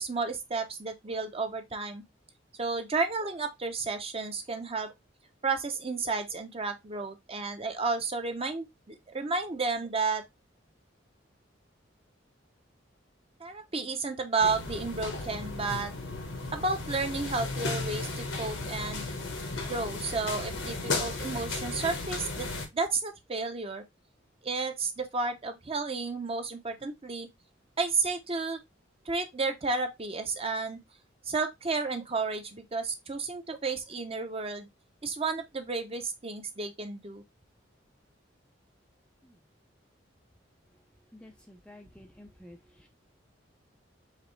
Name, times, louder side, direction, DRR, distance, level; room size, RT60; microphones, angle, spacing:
voice 1, 0.0-2.0 2.6-4.9 5.4-10.2 13.4-15.9 16.5-19.0 19.7-22.5 22.7-23.8 24.4-27.3 27.8-28.6 29.1-30.8 31.3-34.7 35.0-37.2, right 4 dB, 30° right, 0.8 m, -32 dB
sound 1, 14.4-22.7, left 3 dB, 90° left, 1.5 m, -35 dB
voice 2, 41.2-42.6, left 1 dB, 5° left, 0.5 m, -50 dB
5.0 x 3.2 x 3.2 m
head